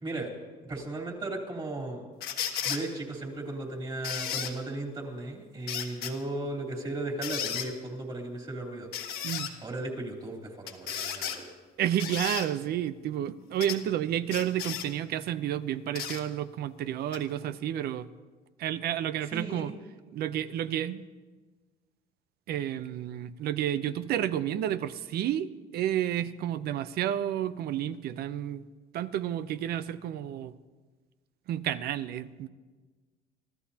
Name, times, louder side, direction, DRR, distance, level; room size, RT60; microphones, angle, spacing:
voice 1, 0.7-2.0 2.6-8.9 9.6-11.5 19.3-19.7, right 2 dB, 30° right, 0 dB, 3.5 m, -36 dB
sound 1, 2.2-2.8 4.0-4.5 5.7-6.1 7.2-7.7 8.9-9.5 10.7-11.4 12.0-12.5 13.6-13.8 14.3-14.9 15.9-16.2 17.1-17.2, left 9 dB, 70° left, 1.5 m, -34 dB
voice 2, 11.8-18.1 18.6-19.7 20.1-21.0 22.5-28.6 28.9-30.5 31.5-32.5, right 11 dB, 70° right, 14 dB, 0.7 m, -31 dB
26.0 x 14.0 x 2.9 m, 1.4 s
cardioid pair, 110°, 17 cm